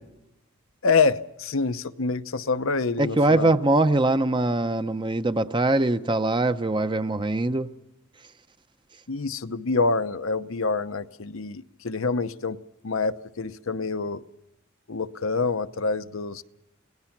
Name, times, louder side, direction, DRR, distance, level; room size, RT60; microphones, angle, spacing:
voice 1, 0.8-3.5 9.1-12.6 12.8-14.2 14.9-16.4, left 4 dB, 70° left, 0.9 m, -26 dB
voice 2, 3.0-7.7, right 2 dB, 25° right, 0.8 m, -22 dB
28.5 x 18.0 x 6.0 m
head